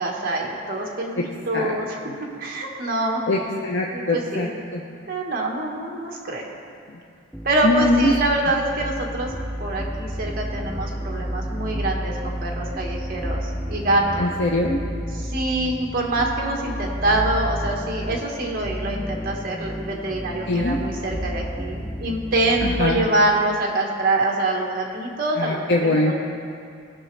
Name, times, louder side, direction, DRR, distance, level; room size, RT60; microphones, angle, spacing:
voice 1, 0.0-2.0 2.4-3.2 3.9-4.5 5.1-6.5 7.4-9.3 9.6-14.3 15.1-26.1, right 2 dB, 45° right, 0 dB, 1.3 m, -25 dB
voice 2, 3.3-4.8 7.6-8.1 14.2-14.8 20.5-20.8 22.6-23.1 25.4-26.1, left 2 dB, 60° left, -1 dB, 0.6 m, -22 dB
sound 1, 7.3-23.1, equal, 5° left, 0.3 m, -31 dB
17.5 x 6.0 x 3.3 m, 2.4 s
head